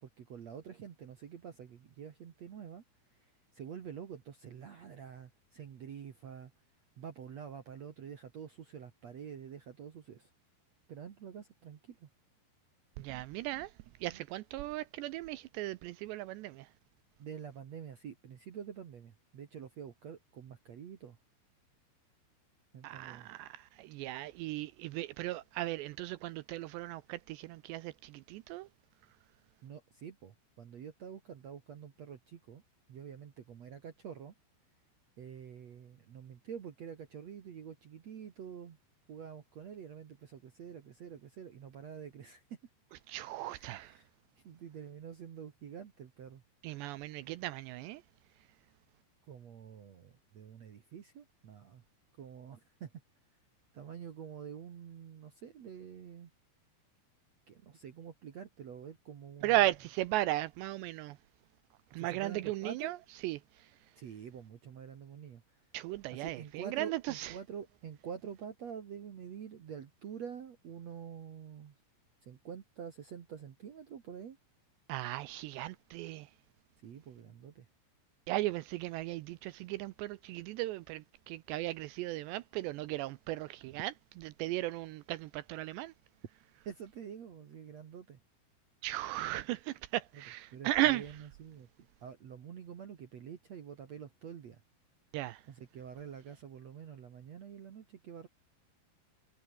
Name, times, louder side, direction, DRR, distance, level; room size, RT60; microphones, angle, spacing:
voice 1, 0.0-2.8 3.2-6.5 7.0-10.3 10.9-12.1 13.0-13.1 14.1-14.2 17.2-21.2 22.7-23.3 29.6-32.6 32.9-34.3 35.2-38.8 39.1-42.6 43.5-44.1 44.4-46.4 49.3-51.8 52.2-52.9 53.7-56.3 57.5-59.5 62.0-63.0 64.0-65.7 66.1-71.7 72.2-74.4 76.8-77.7 86.7-88.2 90.1-90.2 90.5-91.7 92.0-94.6 95.5-98.3, right 8 dB, 60° right, 1.9 m, -47 dB
voice 2, 13.0-13.7 14.0-16.7 22.8-28.7 43.1-44.0 46.6-48.0 59.4-61.2 61.9-63.0 63.2-63.7 65.7-67.3 74.9-76.3 78.3-85.9 88.8-91.0 95.1-95.4, right 16 dB, 80° right, 2.7 m, -36 dB
omnidirectional pair, 5.5 m